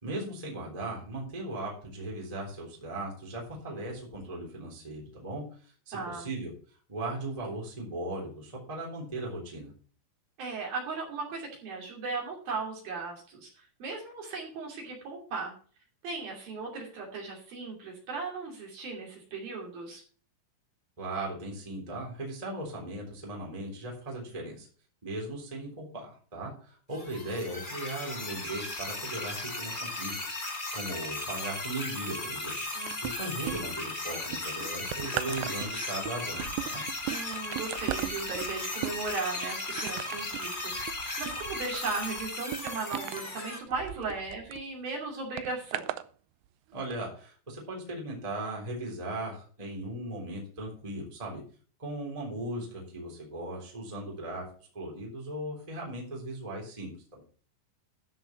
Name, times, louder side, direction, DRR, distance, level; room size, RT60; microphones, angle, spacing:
voice 1, 0.0-5.4 5.9-6.5 6.9-9.7 21.0-24.7 25.0-30.2 30.7-32.5 33.0-36.8 46.7-51.4 51.8-54.4 54.7-57.2, right 1 dB, 10° right, -1 dB, 2.7 m, -38 dB
voice 2, 5.9-6.3 10.4-15.5 16.0-20.0 32.7-33.6 37.1-45.9, right 4 dB, 55° right, -1 dB, 4.1 m, -37 dB
sound 1, 26.9-43.6, left 2 dB, 80° left, 0.4 m, -36 dB
sound 2, 32.9-33.9 34.3-44.6 45.4-46.1 46.8-46.9, right 15 dB, 80° right, 2.6 m, -38 dB
13.0 x 5.5 x 5.9 m, 0.42 s
omnidirectional pair, 5.4 m